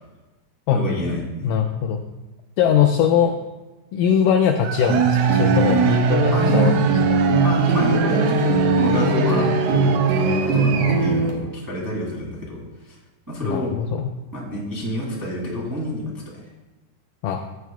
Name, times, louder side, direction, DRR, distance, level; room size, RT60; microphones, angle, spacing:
voice 1, 0.7-1.6 6.3-6.9 7.4-13.0 13.3-13.7 14.3-16.0, equal, 5° right, -5 dB, 1.7 m, -27 dB
voice 2, 1.4-2.0 2.6-3.4 3.9-6.8 7.1-7.2 10.7-11.3 13.4-14.2 17.2-17.5, left 8 dB, 85° left, 4 dB, 1.9 m, -21 dB
Cheering / Crowd, 4.5-11.3, right 7 dB, 85° right, 2.6 m, -29 dB
sound 1, 4.9-11.3, right 3 dB, 55° right, 2.1 m, -19 dB
15.5 x 9.0 x 2.3 m, 1.1 s
omnidirectional pair, 4.4 m